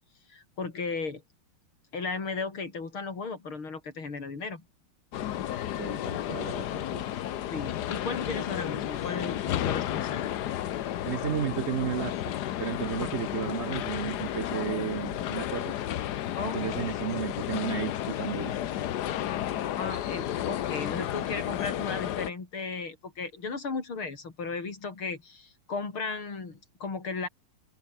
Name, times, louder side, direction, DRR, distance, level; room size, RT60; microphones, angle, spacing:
voice 1, 0.3-1.2 1.9-4.6 7.5-10.3 13.0-13.2 16.4-16.7 19.8-27.3, left 4 dB, 85° left, 5.0 m, -35 dB
sound 1, 5.1-22.3, left 12 dB, 60° left, 1.2 m, -32 dB
voice 2, 5.8-7.0 11.0-12.1 12.6-15.7 16.4-18.5, right 8 dB, 70° right, 0.6 m, -33 dB
omnidirectional pair, 2.2 m